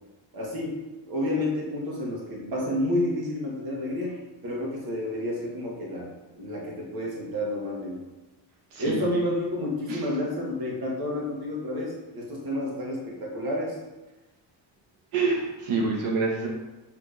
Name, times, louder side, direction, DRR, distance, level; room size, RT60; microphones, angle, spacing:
voice 1, 0.3-4.2 4.4-8.0 8.8-13.8, left 1 dB, 50° right, -2 dB, 1.9 m, -30 dB
voice 2, 8.7-9.0 9.9-10.0 15.1-16.5, right 4 dB, 85° right, -2 dB, 1.7 m, -26 dB
7.4 x 3.7 x 5.1 m, 1.1 s
cardioid pair, 135°, 47 cm